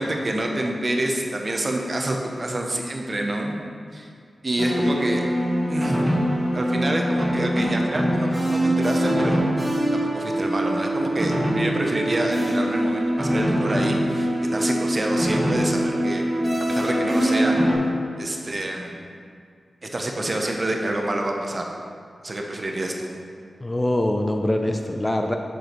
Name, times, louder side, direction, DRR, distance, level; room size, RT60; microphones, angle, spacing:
voice 1, 0.0-3.5 3.9-4.1 4.4-5.2 5.7-6.1 6.5-9.5 9.9-16.2 16.7-17.6 18.2-18.9 19.8-21.6 22.2-23.2, right 1 dB, 35° right, 1 dB, 0.9 m, -27 dB
sound 1, 4.6-17.7, equal, 10° right, 1.9 m, -23 dB
voice 2, 23.6-25.4, left 1 dB, 15° left, 4 dB, 0.4 m, -23 dB
8.0 x 6.3 x 4.4 m, 2.3 s
wide cardioid pair, 130°, 0 cm